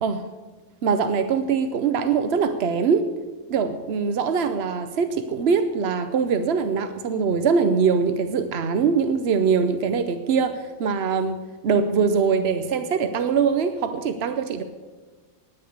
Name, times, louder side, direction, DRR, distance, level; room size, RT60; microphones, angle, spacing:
voice 1, 0.8-3.1 3.5-14.6, right 5 dB, 55° right, 9 dB, 0.7 m, -22 dB
10.0 x 9.6 x 8.6 m, 1.4 s
omnidirectional pair, 1.7 m